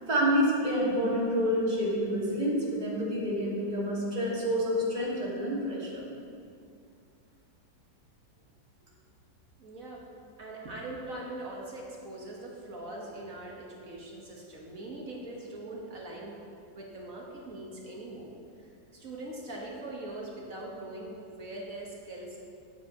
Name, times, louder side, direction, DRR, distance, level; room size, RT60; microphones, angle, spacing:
voice 1, 0.1-6.0, equal, 20° right, -9 dB, 2.9 m, -28 dB
voice 2, 9.6-10.0 10.4-16.4 16.7-18.3 18.6-22.4, right 2 dB, 50° right, -2 dB, 1.6 m, -42 dB
9.1 x 8.8 x 4.8 m, 2.4 s
omnidirectional pair, 1.9 m